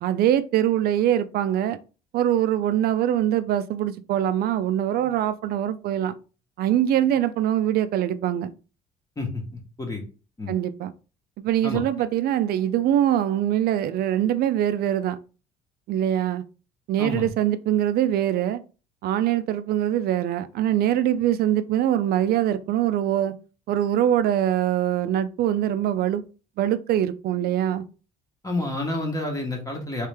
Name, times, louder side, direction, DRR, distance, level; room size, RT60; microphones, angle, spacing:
voice 1, 0.0-1.8 2.1-6.2 6.6-8.5 10.5-10.9 11.4-15.2 15.9-16.4 16.9-18.6 19.0-23.3 23.7-26.2 26.6-27.8, right 11 dB, 65° right, 0.4 m, -23 dB
voice 2, 9.2-10.0 10.4-10.5 11.6-11.8 17.0-17.3 28.4-30.1, left 2 dB, 20° left, 1.1 m, -29 dB
3.2 x 3.2 x 3.4 m
cardioid pair, 110°, 17 cm